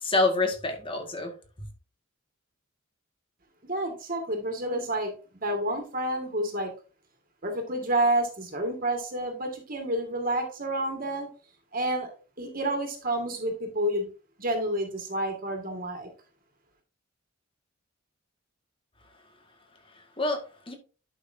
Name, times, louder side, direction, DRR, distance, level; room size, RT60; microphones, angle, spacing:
voice 1, 0.0-1.3 20.2-20.7, left 2 dB, 25° left, 1.7 m, -27 dB
voice 2, 3.7-5.1 5.4-6.7 7.4-11.3 11.7-12.1 12.4-14.1 14.4-16.1, right 1 dB, 45° right, 1.9 m, -29 dB
11.0 x 5.8 x 2.7 m
head